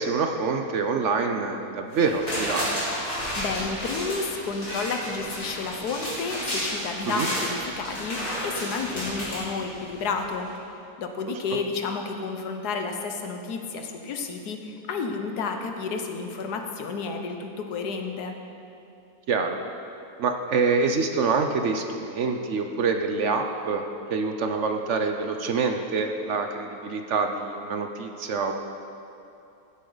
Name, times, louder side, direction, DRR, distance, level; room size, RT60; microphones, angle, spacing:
voice 1, 0.0-2.9 7.1-7.3 19.3-19.6 20.2-28.5, right 4 dB, 60° right, 5 dB, 0.9 m, -26 dB
sound 1, 1.9-10.1 10.5-10.6, equal, 40° left, 3.2 m, -32 dB
voice 2, 3.3-10.5 11.0-18.3, left 4 dB, 85° left, 5 dB, 1.5 m, -31 dB
15.0 x 8.4 x 3.9 m, 2.7 s
omnidirectional pair, 1.6 m